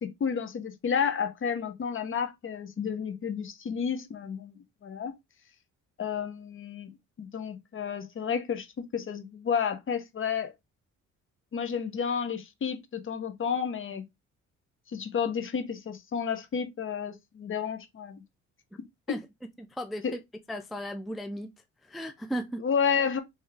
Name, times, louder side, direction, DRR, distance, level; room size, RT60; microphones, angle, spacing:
voice 1, 0.0-5.1 6.0-6.9 7.2-10.5 11.5-14.0 14.9-18.2 19.1-19.2 20.0-20.2 22.6-23.2, left 7 dB, 40° left, 0.8 m, -31 dB
voice 2, 19.6-20.2 20.5-21.5 21.8-22.7, equal, ahead, 0.4 m, -35 dB
3.5 x 3.0 x 3.3 m
cardioid pair, 90°, 30 cm